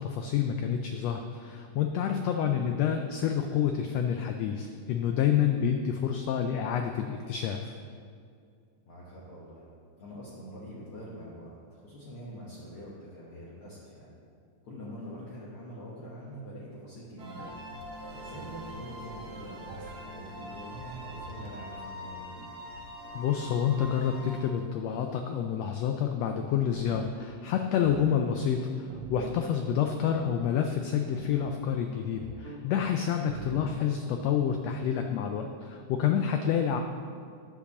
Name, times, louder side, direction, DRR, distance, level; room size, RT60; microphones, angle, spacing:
voice 1, 0.0-7.7 23.1-36.8, left 8 dB, 90° left, 5 dB, 1.4 m, -28 dB
voice 2, 8.9-9.7 10.0-14.1 14.6-17.5 18.1-22.4 30.0-30.2 33.5-33.6, equal, 55° left, -6 dB, 1.9 m, -45 dB
sound 1, 17.2-24.4, equal, 55° right, 1.1 m, -43 dB
sound 2, 26.7-27.2 27.8-28.3 28.9-29.4 31.1-31.6 32.2-32.7 33.3-33.8, right 3 dB, 75° right, 2.3 m, -43 dB
10.0 x 4.7 x 6.8 m, 2.3 s
omnidirectional pair, 3.5 m